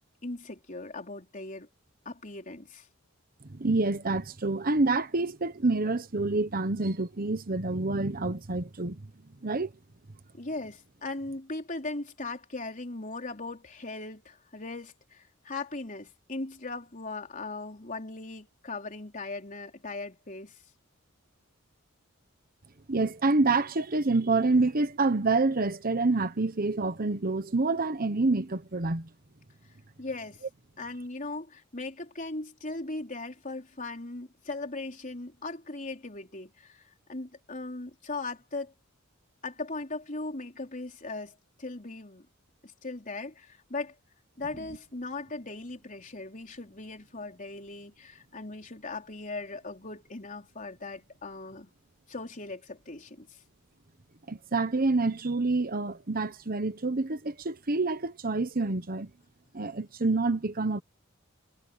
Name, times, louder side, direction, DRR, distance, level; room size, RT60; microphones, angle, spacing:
voice 1, 0.2-1.7 2.1-2.9 10.4-20.6 30.0-30.4 30.8-38.7 39.4-42.3 42.6-43.9 44.4-51.7 52.1-53.4, left 3 dB, 40° left, 4.0 m, -39 dB
voice 2, 3.5-9.0 9.4-9.7 22.9-29.1 54.3-59.1 59.5-60.8, right 3 dB, 45° right, 1.2 m, -27 dB
head